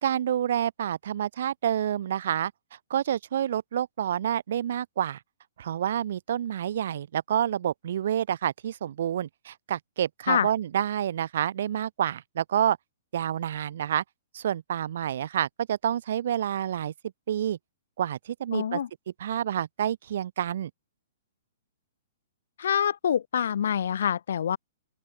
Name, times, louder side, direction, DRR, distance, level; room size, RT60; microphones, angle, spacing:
voice 1, 0.0-2.5 2.9-5.2 5.6-12.8 13.1-14.0 14.3-16.9 17.3-17.6 18.0-18.8 19.2-20.7, right 10 dB, 55° right, 1.9 m, -28 dB
voice 2, 18.5-18.9 22.6-24.6, left 8 dB, 65° left, 0.7 m, -26 dB
open air
hypercardioid pair, 170°, 0 cm